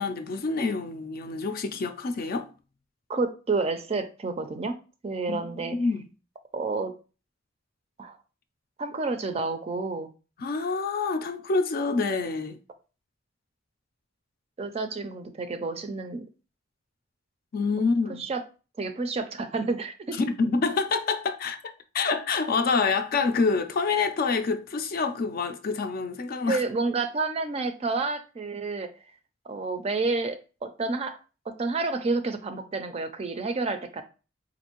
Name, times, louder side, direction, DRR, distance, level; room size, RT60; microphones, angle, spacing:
voice 1, 0.0-2.5 5.3-6.1 10.4-12.6 17.5-18.2 20.2-21.6 21.9-26.6, left 4 dB, 50° left, 0.4 m, -27 dB
voice 2, 3.1-4.7 5.0-5.8 6.5-6.9 8.0-8.2 8.8-10.1 14.6-16.2 18.2-18.4 18.8-20.5 26.5-28.9 29.5-31.2 31.6-34.0, right 3 dB, 30° right, 0.4 m, -29 dB
4.3 x 2.6 x 2.9 m
head